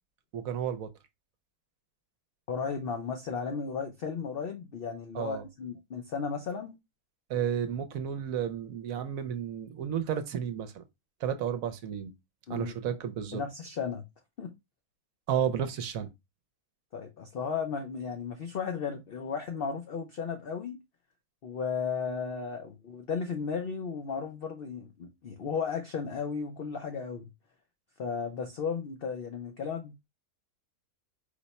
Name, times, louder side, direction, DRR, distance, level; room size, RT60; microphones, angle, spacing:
voice 1, 0.3-0.9 5.1-5.4 7.3-10.8 11.2-12.1 12.5-13.4 15.3-16.1, right 8 dB, 70° right, 1.0 m, -32 dB
voice 2, 2.5-6.8 12.5-12.7 13.3-14.0 14.4-14.5 16.9-20.8 21.4-27.3 28.0-29.9, left 6 dB, 55° left, 0.6 m, -35 dB
5.0 x 2.2 x 4.0 m
omnidirectional pair, 1.6 m